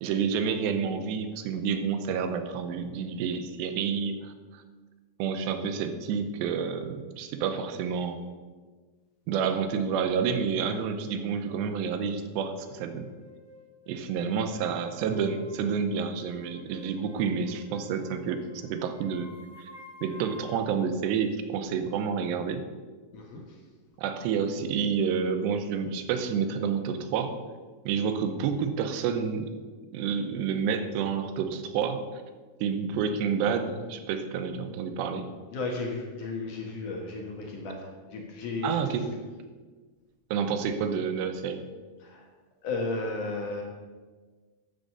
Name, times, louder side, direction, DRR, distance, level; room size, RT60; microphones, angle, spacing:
voice 1, 0.0-4.6 5.2-8.2 9.3-13.1 13.9-19.3 19.6-19.7 20.0-22.6 24.0-27.3 27.8-29.5 29.9-32.0 32.6-35.3 38.6-39.1 40.3-41.6, right 6 dB, 90° right, 8 dB, 3.1 m, -29 dB
sound 1, 12.6-20.7, left 2 dB, ahead, 1.7 m, -51 dB
voice 2, 35.5-38.8 42.0-42.2 42.6-43.6, left 3 dB, 60° left, 1 dB, 2.4 m, -34 dB
13.5 x 6.3 x 6.8 m, 1.4 s
omnidirectional pair, 4.8 m